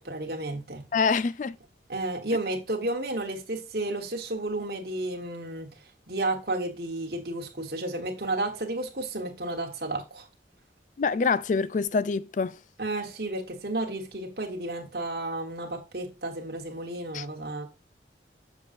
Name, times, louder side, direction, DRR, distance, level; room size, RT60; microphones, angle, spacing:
voice 1, 0.0-0.8 1.9-5.7 6.1-10.3 12.8-17.7, right 2 dB, 55° right, 1.5 m, -32 dB
voice 2, 0.9-1.6 11.0-12.6 17.1-17.3, left 5 dB, 45° left, 0.3 m, -25 dB
6.9 x 6.3 x 2.6 m
head